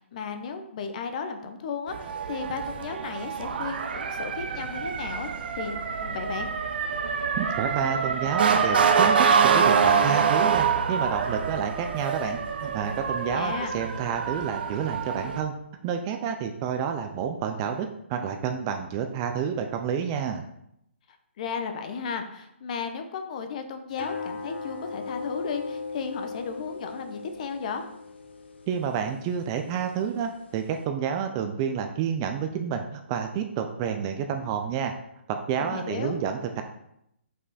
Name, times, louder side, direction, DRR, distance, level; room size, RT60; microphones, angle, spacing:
voice 1, 0.0-5.3 5.6-6.5 13.3-13.7 21.4-27.9 35.6-36.2, left 5 dB, 35° left, 7 dB, 0.7 m, -34 dB
Motor vehicle (road) / Siren, 1.9-15.4, right 6 dB, 50° right, 0.7 m, -25 dB
voice 2, 7.4-9.2 9.4-15.5 15.8-20.4 28.7-34.9 35.3-36.6, right 7 dB, 20° right, 6 dB, 0.4 m, -29 dB
sound 1, 23.9-30.9, left 4 dB, 60° left, 1.0 m, -39 dB
5.6 x 5.3 x 4.1 m, 0.78 s
hypercardioid pair, 160°, 7 cm